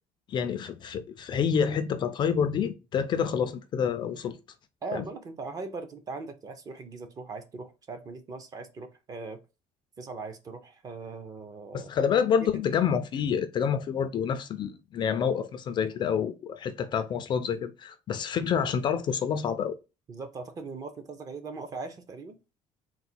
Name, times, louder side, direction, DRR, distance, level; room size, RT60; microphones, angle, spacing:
voice 1, 0.3-4.4 4.9-5.1 11.7-19.8, left 7 dB, 35° left, 0.4 m, -28 dB
voice 2, 4.8-9.4 10.0-11.9 20.1-22.4, right 4 dB, 30° right, 0.6 m, -40 dB
3.9 x 2.1 x 4.3 m
cardioid pair, 160°, 13 cm